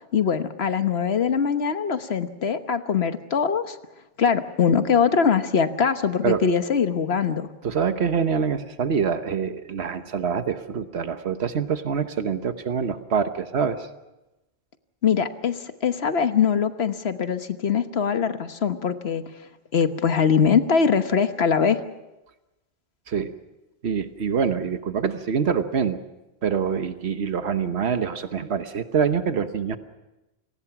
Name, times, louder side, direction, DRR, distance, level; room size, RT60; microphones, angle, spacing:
voice 1, 0.1-3.8 4.2-7.5 15.0-19.2 19.7-21.8, left 6 dB, 80° left, 9 dB, 1.4 m, -22 dB
voice 2, 7.6-13.9 23.1-23.3 23.8-26.0 26.4-29.8, right 6 dB, 90° right, 9 dB, 1.3 m, -25 dB
28.5 x 19.5 x 6.0 m, 1.0 s
omnidirectional pair, 1.1 m